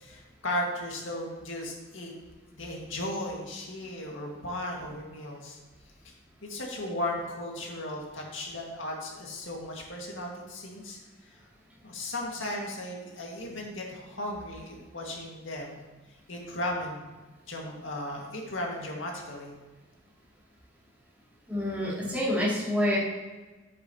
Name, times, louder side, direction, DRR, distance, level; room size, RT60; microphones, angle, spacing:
voice 1, 0.0-2.1 2.5-5.6 6.4-11.0 11.8-15.8 16.3-17.1 17.5-19.5, left 1 dB, 75° left, -1 dB, 2.0 m, -36 dB
voice 2, 21.5-23.0, left 1 dB, 10° right, -9 dB, 2.7 m, -27 dB
9.9 x 8.7 x 3.0 m, 1.2 s
head